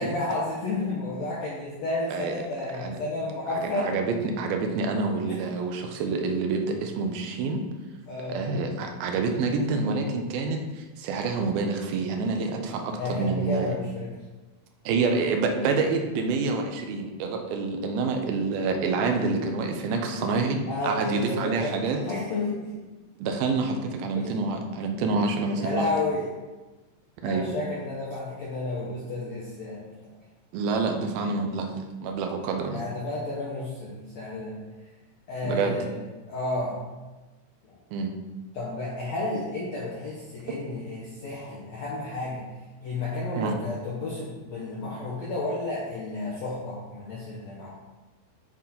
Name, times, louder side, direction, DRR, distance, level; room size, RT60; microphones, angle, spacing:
voice 1, 0.0-4.0 5.3-5.4 8.1-8.4 12.9-14.1 20.2-20.3 20.7-22.7 24.1-24.3 25.6-26.3 27.2-29.9 32.7-34.5 35.3-35.9 36.3-36.8 37.7-37.8 38.5-42.4 42.8-47.7, left 2 dB, 85° left, -6 dB, 1.5 m, -31 dB
voice 2, 3.5-7.6 8.3-13.8 14.9-20.6 20.8-22.0 23.2-25.9 27.2-27.4 30.5-31.7 32.0-32.8 35.4-35.8 37.9-38.1 43.4-43.5, right 4 dB, 80° right, 4 dB, 2.3 m, -27 dB
8.2 x 4.3 x 3.8 m, 1.2 s
omnidirectional pair, 4.7 m